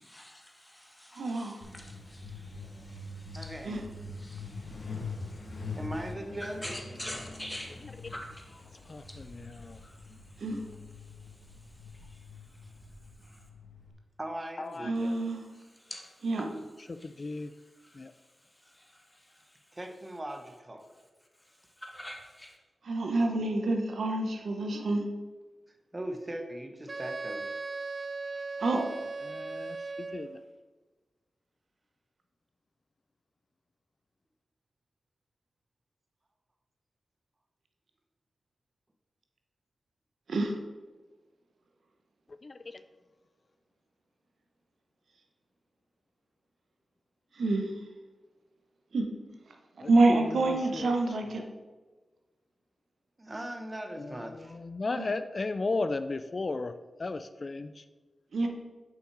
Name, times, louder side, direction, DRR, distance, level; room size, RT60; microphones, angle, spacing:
voice 1, 0.1-2.1 2.7-3.5 4.1-5.8 6.6-7.7 8.1-8.6 9.0-9.1 9.4-9.5 9.8-9.9 15.8-16.1 17.0-17.1 17.8-18.0 18.7-19.2 21.8-22.5, left 1 dB, 15° left, 1 dB, 1.5 m, -45 dB
voice 2, 1.2-1.6 3.6-3.8 10.4-10.6 14.8-15.4 16.2-16.5 22.8-25.0 28.6-28.9 40.3-40.6 47.4-47.7 48.9-49.1 49.9-51.4 54.9-55.1 58.3-58.5, right 2 dB, 80° right, 3 dB, 0.9 m, -27 dB
Truck, 1.6-13.9, left 3 dB, 65° left, 1.2 m, -44 dB
voice 3, 3.4-3.9 4.7-4.8 5.7-6.9 14.2-15.2 19.7-20.9 25.9-27.5 53.2-54.6, right 1 dB, 25° right, 5 dB, 1.0 m, -40 dB
voice 4, 8.9-9.8 14.6-14.9 16.9-17.5 18.0-18.1 29.2-30.3 42.4-42.5 49.8-49.9 50.5-50.9 54.0-54.1 54.5-56.7 57.0-57.7, left 3 dB, 45° left, 12 dB, 0.3 m, -35 dB
Wind instrument woodwind instrument, 26.9-30.4, right 3 dB, 45° right, 0.4 m, -38 dB
6.4 x 5.6 x 4.7 m, 1.3 s
cardioid pair, 65°, 0 cm